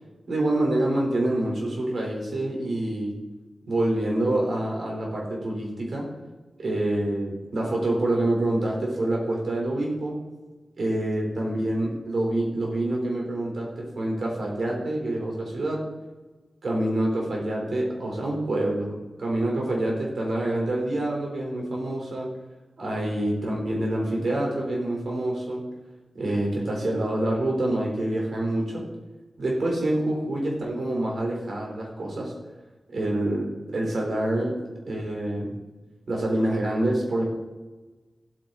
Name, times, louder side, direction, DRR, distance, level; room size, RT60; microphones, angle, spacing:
voice 1, 0.3-3.2 3.7-6.1 6.6-10.2 10.8-15.9 16.6-22.3 22.8-25.7 26.1-28.9 29.4-32.3 32.9-35.5 36.1-37.2, right 1 dB, 65° right, -1 dB, 3.9 m, -26 dB
14.5 x 8.7 x 4.0 m, 1.2 s
wide cardioid pair, 150°, 0 cm